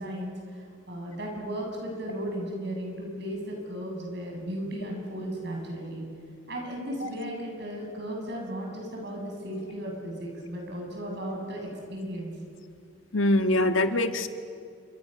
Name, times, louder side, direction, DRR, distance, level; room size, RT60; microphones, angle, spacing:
voice 1, 0.0-6.0 6.5-12.3, equal, 60° right, 0 dB, 7.9 m, -35 dB
voice 2, 13.1-14.3, left 1 dB, 85° left, 7 dB, 1.6 m, -23 dB
29.0 x 26.5 x 6.9 m, 2.3 s
head